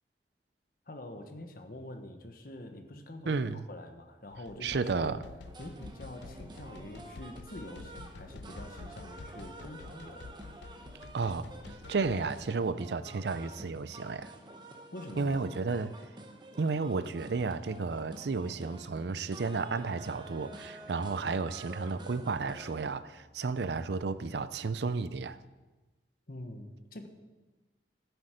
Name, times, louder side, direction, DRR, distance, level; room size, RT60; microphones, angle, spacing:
voice 1, 0.9-5.2 5.6-10.3 14.9-15.4 26.3-27.1, left 1 dB, 55° left, 1.2 m, -45 dB
voice 2, 3.3-3.6 4.6-5.2 11.1-11.5 11.9-14.3 15.2-15.9 16.6-25.4, right 4 dB, 70° right, 0.5 m, -32 dB
sound 1, 4.3-12.5, left 3 dB, 75° left, 0.5 m, -49 dB
sound 2, 5.4-22.9, right 1 dB, 25° right, 0.9 m, -49 dB
14.0 x 7.9 x 5.1 m
head